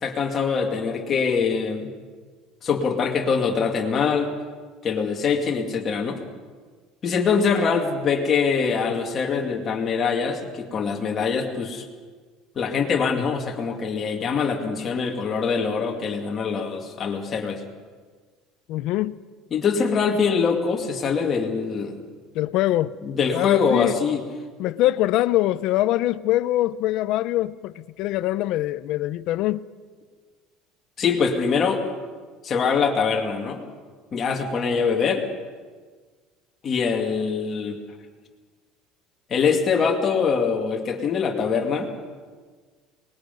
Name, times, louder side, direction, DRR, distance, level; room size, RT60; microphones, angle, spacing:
voice 1, 0.0-1.9 2.6-4.3 4.8-6.2 7.0-11.8 12.6-17.6 19.5-22.0 23.0-24.2 31.0-31.8 32.4-33.6 34.1-35.2 36.6-37.8 39.3-41.9, left 5 dB, 25° left, 2.3 m, -23 dB
voice 2, 18.7-19.2 22.3-22.9 23.3-24.0 24.6-29.7, left 15 dB, 50° left, 0.6 m, -23 dB
24.0 x 20.5 x 5.4 m
cardioid pair, 175°, 0 cm